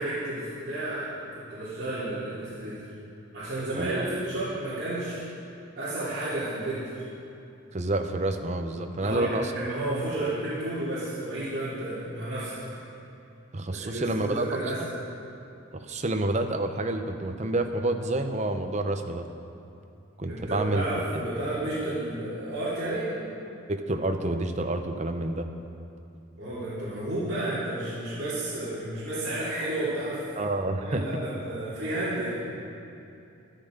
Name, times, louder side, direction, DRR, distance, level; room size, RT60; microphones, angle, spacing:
voice 1, 0.0-2.9 3.3-5.2 5.8-7.0 9.0-12.6 13.7-14.8 20.3-23.1 26.4-30.2 30.8-32.4, right 1 dB, 50° right, -13 dB, 3.2 m, -32 dB
voice 2, 3.7-4.1 7.7-9.5 13.5-14.4 15.7-19.3 20.2-20.8 21.1-21.3 23.7-25.5 30.4-31.0, right 2 dB, 30° right, 5 dB, 0.8 m, -28 dB
13.0 x 12.0 x 5.2 m, 2.7 s
head